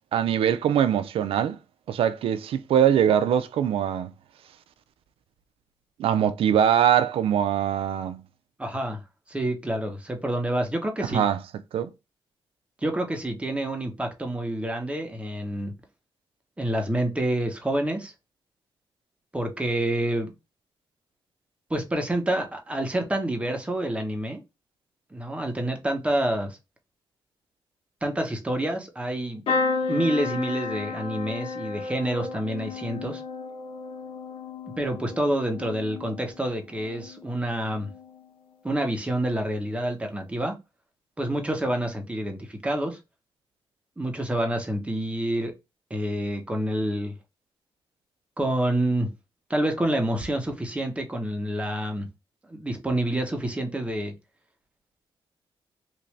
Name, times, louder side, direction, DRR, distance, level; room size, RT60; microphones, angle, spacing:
voice 1, 0.1-1.6 1.9-4.1 6.0-8.2 11.1-11.4 11.7-11.9, right 9 dB, 85° right, 0.4 m, -22 dB
voice 2, 8.6-9.0 9.3-11.2 12.8-15.7 16.6-18.1 19.3-20.3 21.7-24.4 25.1-26.6 28.0-29.4 29.9-33.2 34.8-37.9 38.6-40.5 41.2-43.0 44.0-45.5 45.9-47.1 48.4-49.1 49.5-52.1 52.5-54.1, right 1 dB, 15° right, 0.9 m, -28 dB
sound 1, 29.5-37.3 37.7-38.3 39.5-39.7 40.0-40.1, left 4 dB, 85° left, 1.0 m, -33 dB
3.0 x 2.6 x 3.2 m
cardioid pair, 105°, 9 cm